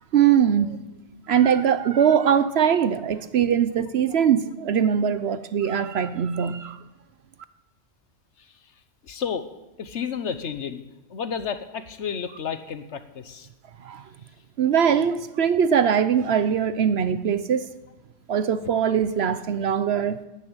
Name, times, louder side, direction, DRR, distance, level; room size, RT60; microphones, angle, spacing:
voice 1, 0.1-0.8 1.3-6.8 13.8-14.0 14.6-17.7 18.3-20.2, right 8 dB, 60° right, 0.9 m, -21 dB
voice 2, 9.0-9.5 9.8-10.8 11.1-13.5, left 7 dB, 65° left, 1.2 m, -31 dB
13.0 x 10.0 x 8.8 m
omnidirectional pair, 1.3 m